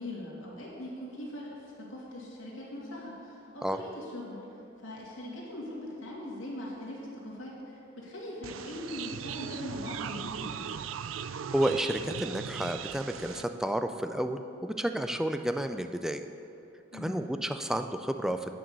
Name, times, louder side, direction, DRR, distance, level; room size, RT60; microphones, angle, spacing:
voice 1, 0.0-4.4 4.8-10.7 16.9-17.2, left 1 dB, 85° left, -4 dB, 2.4 m, -41 dB
sound 1, 8.4-13.4, right 8 dB, 85° right, 0.4 m, -38 dB
voice 2, 11.5-16.2 16.9-18.6, right 1 dB, 5° right, 7 dB, 0.3 m, -31 dB
9.5 x 6.1 x 6.7 m, 2.9 s
head